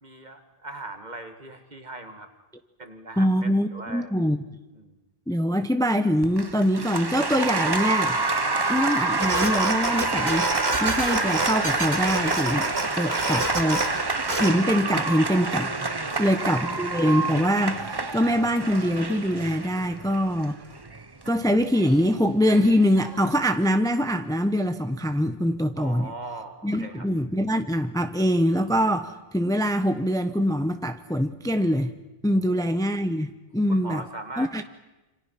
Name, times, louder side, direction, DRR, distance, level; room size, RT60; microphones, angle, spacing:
voice 1, 0.0-2.3 2.8-4.1 4.7-5.0 8.4-8.7 16.0-16.7 25.8-27.1 32.4-32.8 33.7-34.5, right 2 dB, 45° right, 6 dB, 2.3 m, -40 dB
voice 2, 3.2-4.4 5.3-8.2 8.7-10.5 10.8-12.7 12.9-13.9 14.3-20.6 21.3-26.1 26.6-31.9 32.2-34.0 34.4-34.6, equal, 5° left, 8 dB, 0.9 m, -24 dB
Applause, 6.2-23.4, right 3 dB, 25° right, 0.9 m, -28 dB
sound 1, 9.1-14.5, right 2 dB, 85° right, 2.8 m, -29 dB
27.5 x 26.5 x 5.9 m, 1.1 s
omnidirectional pair, 1.0 m